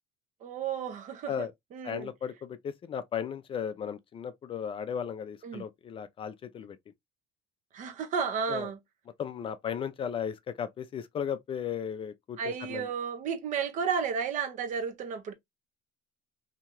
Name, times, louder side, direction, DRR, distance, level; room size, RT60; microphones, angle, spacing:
voice 1, 0.4-2.1 5.4-5.6 7.7-8.8 12.4-15.3, right 6 dB, 50° right, 0.7 m, -33 dB
voice 2, 1.8-6.8 8.5-8.7 9.2-12.9, left 8 dB, 35° left, 0.4 m, -35 dB
2.8 x 2.3 x 2.9 m
cardioid pair, 125°, 17 cm